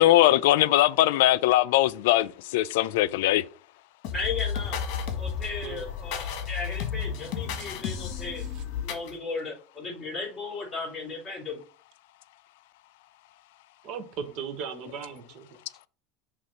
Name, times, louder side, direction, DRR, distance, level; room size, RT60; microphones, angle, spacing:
voice 1, 0.0-3.4, left 15 dB, 85° left, 0.3 m, -21 dB
sound 1, 4.0-9.1, left 7 dB, 60° left, 1.4 m, -32 dB
voice 2, 4.1-4.8 5.2-8.5 8.8-11.6, left 4 dB, 15° left, 3.5 m, -35 dB
voice 3, 13.8-15.6, right 7 dB, 55° right, 1.2 m, -38 dB
6.0 x 3.2 x 5.2 m
supercardioid pair, 140°, 0 cm